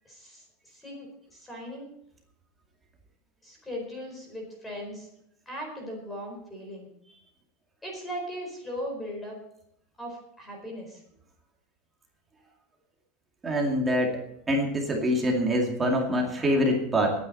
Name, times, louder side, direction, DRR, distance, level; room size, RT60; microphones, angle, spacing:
voice 1, 0.0-1.9 3.4-5.1 5.5-6.9 7.8-9.4 10.0-11.0, equal, 10° left, 1 dB, 4.5 m, -38 dB
voice 2, 13.4-14.2 14.5-17.1, equal, 10° right, 0 dB, 2.3 m, -25 dB
21.0 x 9.5 x 4.2 m, 0.74 s
supercardioid pair, 175°, 0 cm